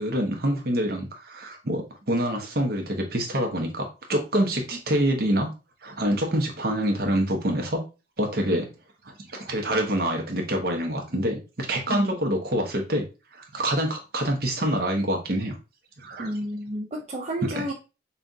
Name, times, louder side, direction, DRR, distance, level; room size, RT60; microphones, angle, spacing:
voice 1, 0.0-5.5 5.8-7.8 8.2-8.7 9.0-13.1 13.3-15.6 16.0-16.4 17.5-17.7, right 1 dB, 55° right, 2 dB, 1.0 m, -26 dB
voice 2, 16.2-17.7, right 1 dB, 35° right, -2 dB, 0.5 m, -31 dB
5.5 x 2.4 x 2.6 m, 0.30 s
head